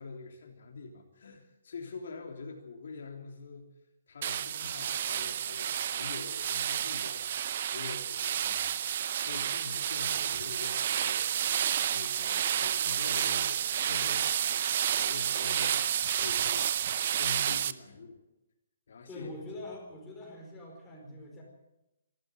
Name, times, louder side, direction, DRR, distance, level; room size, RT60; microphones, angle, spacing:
voice 1, 0.0-3.7 4.1-11.3 11.8-14.6 14.9-18.2 18.9-19.7, left 4 dB, 60° left, 2 dB, 3.3 m, -45 dB
sound 1, 4.2-17.7, right 9 dB, 35° right, 0.6 m, -30 dB
voice 2, 19.1-21.4, left 1 dB, 5° left, -3 dB, 4.7 m, -44 dB
26.0 x 12.5 x 8.0 m, 0.92 s
hypercardioid pair, 175°, 0 cm